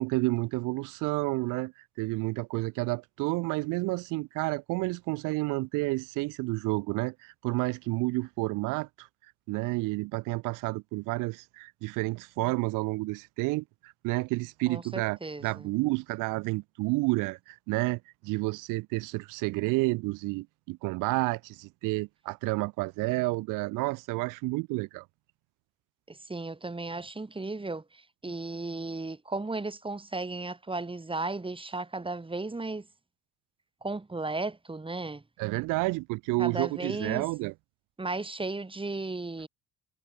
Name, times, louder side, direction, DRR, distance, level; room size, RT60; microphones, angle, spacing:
voice 1, 0.0-9.1 9.5-25.0 35.4-37.5, right 23 dB, 85° right, 4.0 m, -30 dB
voice 2, 14.7-15.7 26.1-32.9 33.8-35.2 36.4-37.3 38.0-39.5, right 3 dB, 15° right, 6.7 m, -35 dB
supercardioid pair, 80°, 31 cm